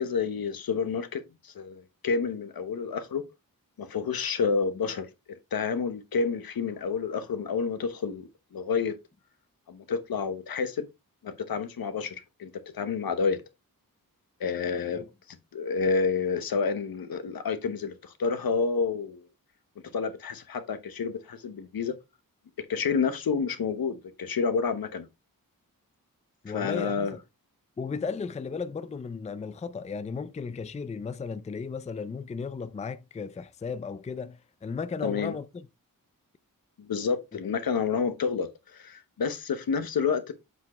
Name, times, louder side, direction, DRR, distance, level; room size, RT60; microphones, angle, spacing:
voice 1, 0.0-3.2 3.8-9.0 9.7-10.9 11.2-13.4 14.4-15.0 15.5-19.3 19.9-21.9 22.7-25.1 26.5-27.1 35.0-35.3 36.8-40.3, left 5 dB, 85° left, 1.1 m, -29 dB
voice 2, 26.4-27.2 27.8-35.7 37.4-37.5, left 5 dB, 20° left, 0.4 m, -35 dB
7.4 x 6.0 x 3.1 m
wide cardioid pair, 170°, 35 cm